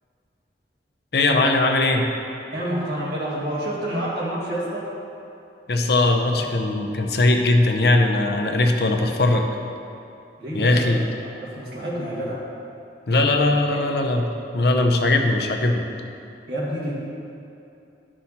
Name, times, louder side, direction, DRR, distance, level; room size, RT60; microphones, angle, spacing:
voice 1, 1.1-2.1 5.7-9.5 10.5-11.0 13.1-15.8, left 2 dB, 60° left, 3 dB, 0.7 m, -20 dB
voice 2, 2.5-4.9 10.4-12.4 13.5-13.8 16.5-16.9, right 1 dB, 65° right, -6 dB, 2.3 m, -29 dB
11.5 x 6.3 x 4.2 m, 2.7 s
head